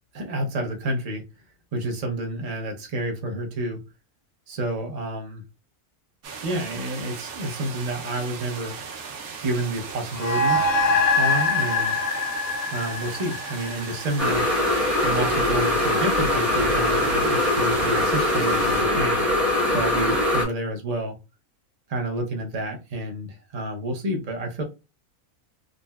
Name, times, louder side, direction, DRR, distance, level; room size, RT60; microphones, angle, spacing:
voice 1, 0.1-1.2 1.7-3.8 4.5-5.4 6.4-8.8 9.4-10.6 11.2-12.0 12.7-14.5 15.0-19.3 19.7-21.2 21.9-24.6, right 1 dB, 50° right, 0.4 m, -29 dB
sound 1, 6.2-18.8, right 6 dB, 75° right, 1.0 m, -37 dB
sound 2, 10.1-14.8, left 3 dB, 80° left, 0.5 m, -24 dB
sound 3, 14.2-20.4, left 1 dB, ahead, 0.6 m, -22 dB
3.7 x 2.1 x 2.2 m
omnidirectional pair, 1.6 m